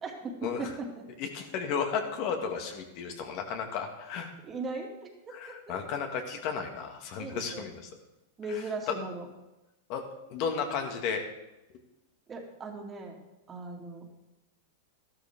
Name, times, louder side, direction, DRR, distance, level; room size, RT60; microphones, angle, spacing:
voice 1, 0.0-1.0 4.4-5.6 7.2-7.7 8.4-9.3 12.3-13.2 13.5-14.1, right 3 dB, 25° right, 2 dB, 2.4 m, -38 dB
voice 2, 1.2-4.3 5.3-7.8 8.9-9.0 9.9-10.0 10.3-11.2, left 6 dB, 50° left, 4 dB, 2.0 m, -33 dB
13.0 x 12.5 x 3.7 m, 0.97 s
hypercardioid pair, 120°, 0 cm